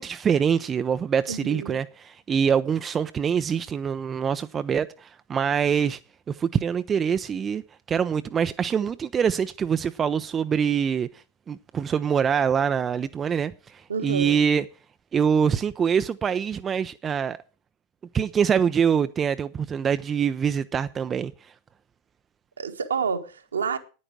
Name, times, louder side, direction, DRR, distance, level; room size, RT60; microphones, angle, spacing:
voice 1, 0.0-6.0 6.3-7.6 7.9-11.1 11.5-14.6 15.1-17.4 18.1-21.5, right 7 dB, 20° right, 0.5 m, -24 dB
voice 2, 1.3-1.8 13.9-14.4 22.6-23.8, right 5 dB, 70° right, 1.4 m, -29 dB
9.9 x 9.6 x 6.2 m
figure-of-eight pair, 90°, 0 cm